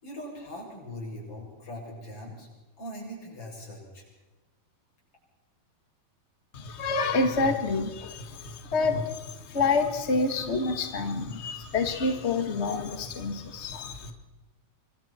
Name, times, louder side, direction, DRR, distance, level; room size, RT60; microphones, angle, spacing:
voice 1, 0.0-2.5 2.8-4.0, left 1 dB, 35° left, -2 dB, 8.1 m, -41 dB
voice 2, 6.5-14.1, left 3 dB, 70° left, 6 dB, 0.6 m, -28 dB
26.0 x 24.0 x 4.4 m, 1.2 s
omnidirectional pair, 4.4 m